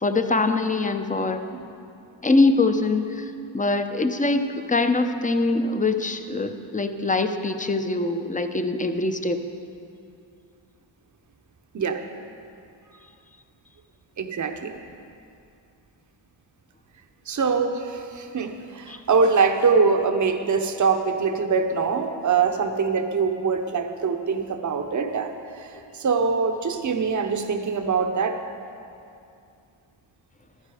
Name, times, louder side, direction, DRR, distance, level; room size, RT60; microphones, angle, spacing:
voice 1, 0.0-1.4 2.2-9.4 18.9-19.0, left 3 dB, 15° left, 8 dB, 0.7 m, -23 dB
voice 2, 14.2-14.8 17.3-28.4, right 5 dB, 40° right, 6 dB, 0.8 m, -23 dB
12.0 x 9.8 x 4.9 m, 2.5 s
cardioid pair, 70°, 46 cm